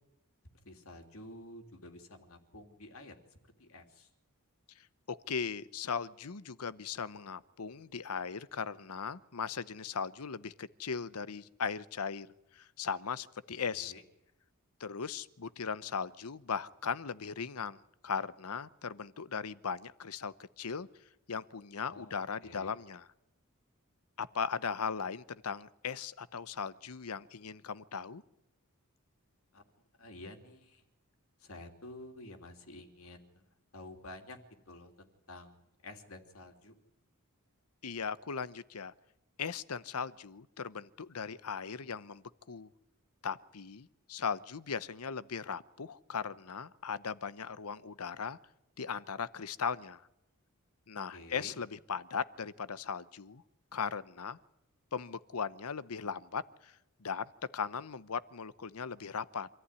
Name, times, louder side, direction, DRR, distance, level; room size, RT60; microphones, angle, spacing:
voice 1, 0.6-3.2 3.6-4.1 13.7-14.0 21.9-22.7 29.5-29.6 30.0-30.8 31.4-33.4 33.7-34.4 34.7-36.7 51.1-51.6, left 2 dB, 70° left, 5 dB, 3.0 m, -50 dB
voice 2, 4.8-12.3 12.5-13.9 14.8-20.9 21.3-23.1 24.2-28.2 37.8-38.9 39.4-42.7 43.2-48.4 48.8-50.1 50.9-53.4 53.7-54.4 54.9-56.7 57.0-59.5, left 6 dB, 85° left, 17 dB, 0.8 m, -38 dB
26.0 x 14.5 x 9.7 m, 0.91 s
head